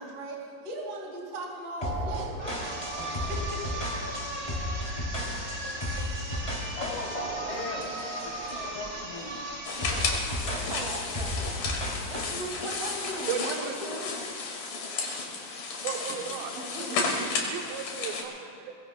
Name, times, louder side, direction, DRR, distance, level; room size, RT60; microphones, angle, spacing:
voice 1, 0.0-2.3 3.1-3.8 10.3-11.7 12.1-14.1 16.5-17.4, right 1 dB, 45° right, -1 dB, 3.2 m, -38 dB
sound 1, 1.8-8.8 9.1-9.4 9.8-12.4, equal, 10° left, 2.0 m, -34 dB
sound 2, 2.4-10.2, right 1 dB, 20° right, 3.2 m, -38 dB
voice 2, 6.8-9.4 16.1-16.4, left 3 dB, 90° left, -4 dB, 5.0 m, -39 dB
sound 3, 9.6-18.2, left 4 dB, 70° left, 3.7 m, -33 dB
voice 3, 13.3-13.7 15.8-16.5 17.2-18.8, right 7 dB, 80° right, 2 dB, 2.6 m, -35 dB
22.5 x 22.5 x 2.2 m, 2.5 s
omnidirectional pair, 4.2 m